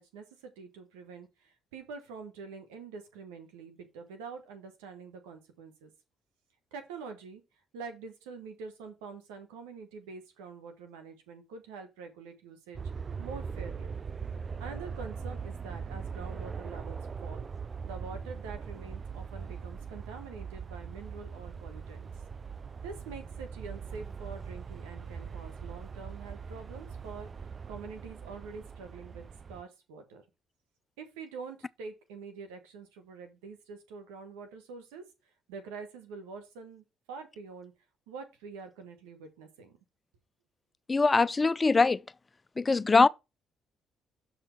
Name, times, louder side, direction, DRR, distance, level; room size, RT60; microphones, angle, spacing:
voice 1, 0.0-5.9 6.7-7.4 7.7-12.8 13.2-13.9 14.6-17.5 17.8-22.1 22.8-27.3 27.7-30.2 31.0-35.0 35.5-37.7 38.1-39.8, right 5 dB, 90° right, 1.5 m, -45 dB
sound 1, 12.7-29.6, right 6 dB, 40° right, 0.3 m, -41 dB
voice 2, 40.9-42.0 42.6-43.1, left 3 dB, 30° left, 0.4 m, -22 dB
6.6 x 4.3 x 5.9 m
supercardioid pair, 60°, 0 cm